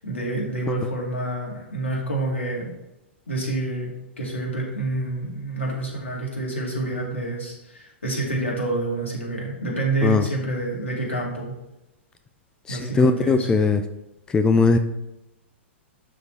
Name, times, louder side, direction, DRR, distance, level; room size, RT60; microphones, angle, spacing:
voice 1, 0.0-2.7 3.3-11.5 12.7-13.5, right 2 dB, 75° left, -1 dB, 2.2 m, -28 dB
voice 2, 12.7-13.8 14.3-14.8, left 4 dB, 10° left, 9 dB, 0.4 m, -19 dB
11.5 x 4.0 x 3.2 m, 0.93 s
figure-of-eight pair, 105°, 7 cm